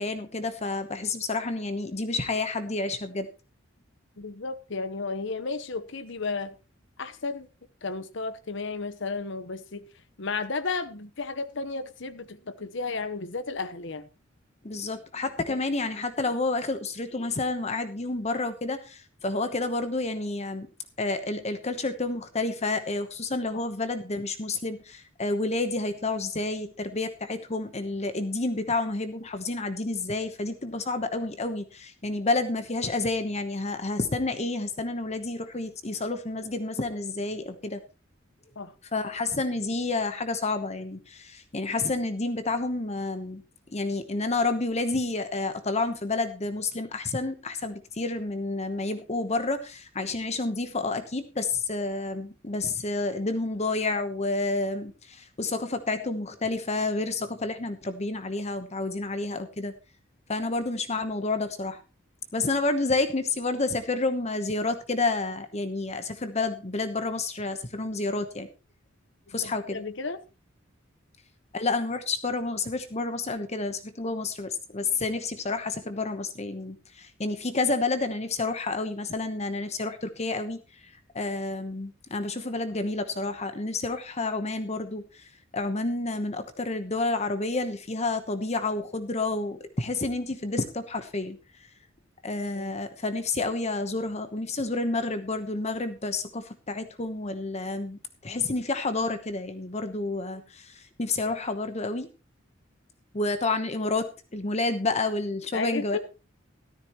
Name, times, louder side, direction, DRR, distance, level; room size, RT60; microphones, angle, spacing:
voice 1, 0.0-3.3 14.6-20.7 21.0-37.8 38.9-43.4 43.7-59.7 60.3-61.8 62.3-68.5 69.3-69.8 71.5-91.4 92.2-102.1 103.1-106.0, left 3 dB, 35° left, 1.0 m, -30 dB
voice 2, 4.2-6.5 7.0-7.5 7.8-9.8 10.2-14.1 15.5-15.6 38.5-38.7 69.4-70.2 92.5-92.8 105.5-106.0, left 4 dB, 65° left, 1.1 m, -33 dB
14.0 x 13.5 x 3.0 m
head